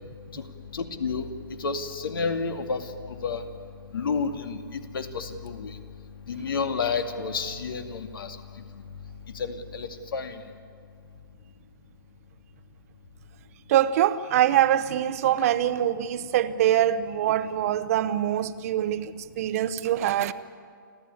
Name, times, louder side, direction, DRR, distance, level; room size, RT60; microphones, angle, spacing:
voice 1, 0.7-1.3 1.6-2.8 3.2-3.4 3.9-5.8 6.3-8.4 9.4-10.4, left 5 dB, 75° left, 2.4 m, -30 dB
voice 2, 13.7-20.3, right 11 dB, 40° right, 0.8 m, -24 dB
30.0 x 13.0 x 9.6 m
hypercardioid pair, 145°, 12 cm